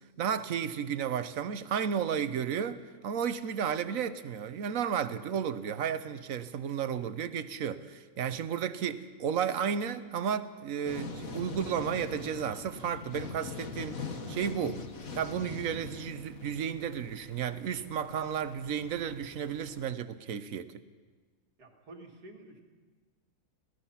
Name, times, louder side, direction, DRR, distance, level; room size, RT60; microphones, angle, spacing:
voice 1, 0.2-14.8 15.1-20.7, right 8 dB, 60° right, 13 dB, 1.2 m, -33 dB
sound 1, 10.8-19.9, left 5 dB, 60° left, 1.8 m, -43 dB
voice 2, 21.6-22.6, right 2 dB, 85° right, 0 dB, 2.9 m, -50 dB
26.5 x 17.0 x 5.7 m, 1.4 s
omnidirectional pair, 1.7 m